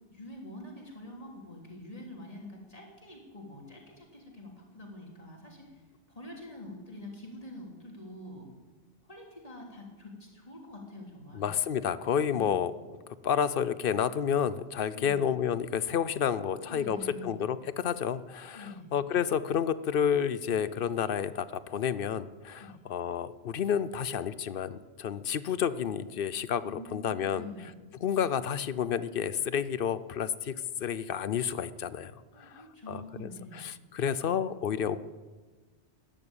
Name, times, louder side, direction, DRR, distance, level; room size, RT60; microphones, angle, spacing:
voice 1, 0.1-8.5 9.0-11.5 12.3-12.6 14.9-15.2 16.4-17.3 18.5-18.9 22.6-22.8 26.6-27.7 32.3-33.7, left 1 dB, 35° left, -1 dB, 3.3 m, -46 dB
voice 2, 11.4-12.7 13.2-17.0 17.2-26.6 26.9-27.4 28.0-30.5 30.8-32.1 32.4-32.5 32.9-35.0, left 8 dB, 60° left, 16 dB, 0.8 m, -30 dB
13.5 x 11.0 x 8.8 m, 1.3 s
omnidirectional pair, 1.1 m